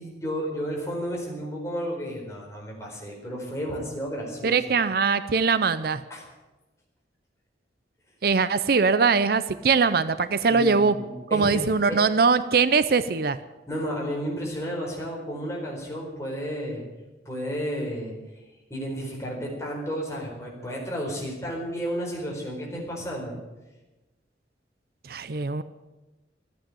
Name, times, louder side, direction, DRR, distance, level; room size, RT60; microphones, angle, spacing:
voice 1, 0.0-4.6 6.1-6.2 10.5-11.6 11.9-12.0 13.7-16.8 17.2-18.1 18.7-23.4, equal, 15° left, -2 dB, 4.4 m, -32 dB
voice 2, 4.4-6.0 8.2-10.9 11.3-13.4 25.1-25.6, right 5 dB, 60° right, 13 dB, 0.5 m, -22 dB
14.0 x 8.8 x 10.0 m, 1.1 s
head